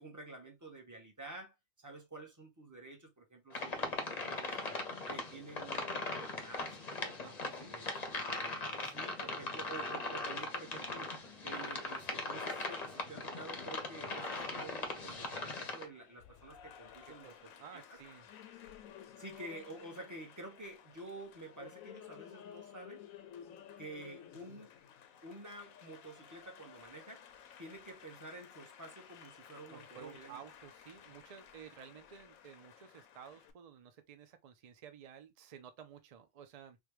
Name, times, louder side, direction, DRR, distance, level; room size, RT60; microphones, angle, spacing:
voice 1, 0.0-4.8 5.1-7.2 7.6-7.9 8.3-11.1 11.4-18.0 19.2-23.0 23.8-24.7 25.2-27.2 27.6-30.4, right 2 dB, 15° right, 0.7 m, -50 dB
sound 1, 3.5-15.9, left 3 dB, 40° left, 0.6 m, -40 dB
voice 2, 7.2-7.8 17.1-18.3 29.7-36.8, right 8 dB, 70° right, 0.3 m, -54 dB
Applause, 13.8-33.5, left 9 dB, 90° left, 1.0 m, -55 dB
3.5 x 2.3 x 3.0 m
omnidirectional pair, 1.4 m